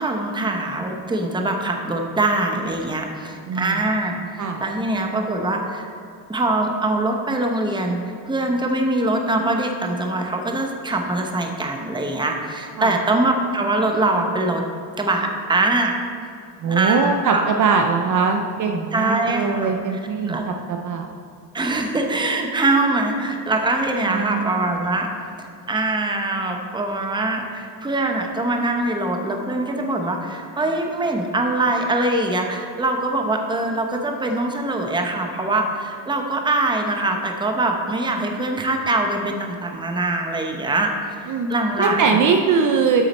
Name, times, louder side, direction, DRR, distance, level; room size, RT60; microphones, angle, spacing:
voice 1, 0.0-5.9 6.3-14.6 15.0-16.0 16.7-17.5 18.9-19.8 20.3-20.5 21.5-25.1 25.4-40.9 41.2-42.2, right 2 dB, 10° right, 3 dB, 0.8 m, -23 dB
voice 2, 3.5-3.8 4.4-4.6 12.8-13.0 16.6-21.1 24.1-24.7 41.3-41.5 41.8-43.0, right 5 dB, 45° right, 4 dB, 0.6 m, -21 dB
8.6 x 6.4 x 4.2 m, 2.5 s
cardioid pair, 120°, 45 cm